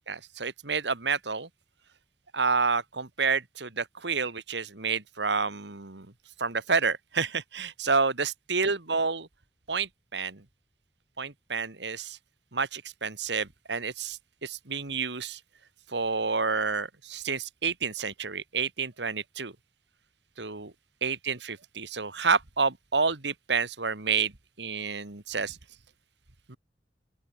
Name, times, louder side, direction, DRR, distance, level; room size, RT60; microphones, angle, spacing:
voice 1, 0.1-1.5 2.3-6.1 6.4-9.3 9.7-10.4 11.2-12.2 12.5-15.4 15.9-19.5 20.4-20.7 21.0-25.6 26.5-26.6, right 5 dB, 70° right, 2.0 m, -29 dB
open air
head